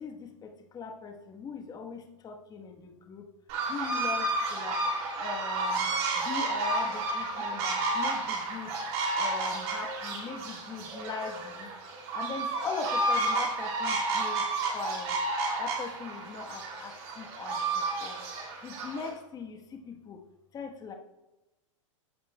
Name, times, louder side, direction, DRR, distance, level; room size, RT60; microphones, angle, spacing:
voice 1, 0.0-3.3 3.7-4.8 5.2-5.9 6.1-8.9 9.2-11.7 12.1-15.2 15.6-18.2 18.6-20.2 20.5-20.9, left 5 dB, 20° left, 4 dB, 1.1 m, -40 dB
sound 1, 3.5-19.1, right 2 dB, 50° right, 2.6 m, -31 dB
14.0 x 5.4 x 2.2 m, 1.0 s
hypercardioid pair, 130°, 17 cm